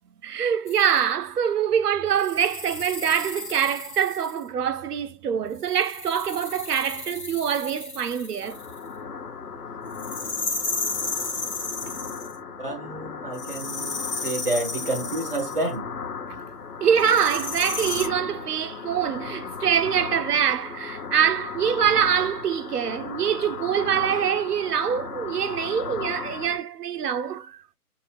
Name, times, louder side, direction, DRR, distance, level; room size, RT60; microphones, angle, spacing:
voice 1, 0.2-8.6 16.8-27.6, right 8 dB, 80° right, 0.6 m, -24 dB
sound 1, 0.7-1.0 2.1-4.4 5.6-8.8 9.9-12.4 13.3-15.7 17.0-18.1, left 4 dB, 45° left, 0.7 m, -33 dB
sound 2, 8.4-26.6, left 6 dB, 85° left, 1.0 m, -36 dB
voice 2, 12.6-15.9, right 2 dB, 40° right, 0.5 m, -29 dB
2.7 x 2.0 x 3.1 m
hypercardioid pair, 180°, 46 cm